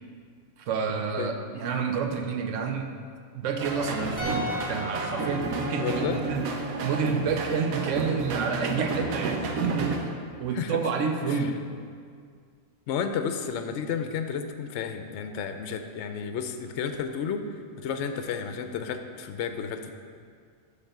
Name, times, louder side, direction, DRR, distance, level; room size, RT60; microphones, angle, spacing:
voice 1, 0.6-2.9 3.3-6.5 6.8-10.1 10.4-11.6, right 5 dB, 70° right, 5 dB, 1.0 m, -29 dB
sound 1, 3.6-10.0, right 3 dB, 90° right, 1.3 m, -32 dB
sound 2, 4.2-7.4 7.6-7.8, left 2 dB, 10° left, 1.4 m, -38 dB
voice 2, 5.8-6.2 10.5-10.8 11.3-11.5 12.9-17.4 17.8-19.9, left 7 dB, 65° left, 7 dB, 0.8 m, -32 dB
9.3 x 3.9 x 6.7 m, 2.1 s
omnidirectional pair, 1.4 m